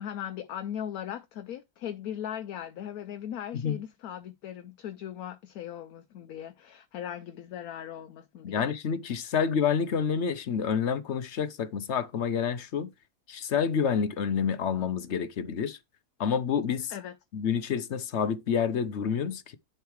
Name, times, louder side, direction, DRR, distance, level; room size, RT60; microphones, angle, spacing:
voice 1, 0.0-8.7 16.9-17.1, left 10 dB, 75° left, 1.1 m, -38 dB
voice 2, 8.4-12.9 13.3-15.8 16.2-16.9 17.3-19.6, left 7 dB, 60° left, 0.9 m, -28 dB
10.5 x 5.6 x 3.1 m
omnidirectional pair, 1.6 m